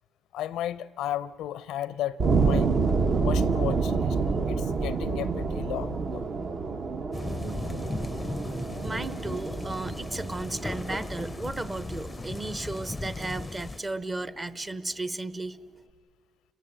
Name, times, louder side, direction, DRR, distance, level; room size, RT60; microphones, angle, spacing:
voice 1, 0.3-2.7 3.2-4.2 4.5-6.3, left 12 dB, 85° left, 17 dB, 0.5 m, -34 dB
sound 1, 2.2-13.0, right 4 dB, 55° right, 1.1 m, -28 dB
sound 2, 7.1-13.8, left 3 dB, 20° left, 0.5 m, -36 dB
voice 2, 8.8-15.6, right 2 dB, 25° right, 15 dB, 0.8 m, -34 dB
30.0 x 18.0 x 8.1 m, 2.1 s
cardioid pair, 90°, 0 cm